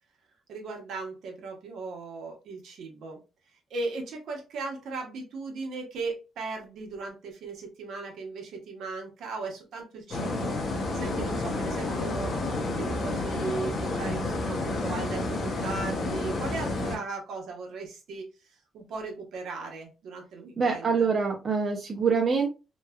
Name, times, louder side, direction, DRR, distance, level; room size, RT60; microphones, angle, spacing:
voice 1, 0.5-3.2 3.7-10.6 10.9-21.1, right 3 dB, 70° right, 1.0 m, -37 dB
sound 1, 10.1-17.0, left 2 dB, 55° left, 0.7 m, -30 dB
voice 2, 20.6-22.5, right 5 dB, 40° right, 0.5 m, -25 dB
3.0 x 2.2 x 2.2 m
cardioid pair, 90°, 0 cm